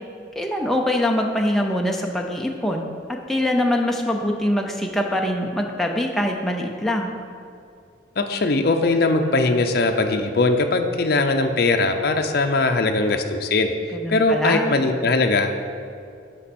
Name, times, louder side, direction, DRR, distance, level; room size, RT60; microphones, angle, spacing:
voice 1, 0.4-7.1 13.9-14.7, left 1 dB, ahead, 1 dB, 0.5 m, -23 dB
voice 2, 8.2-13.7 14.1-15.5, left 3 dB, 55° left, 5 dB, 0.6 m, -20 dB
11.5 x 5.3 x 4.2 m, 2.4 s
head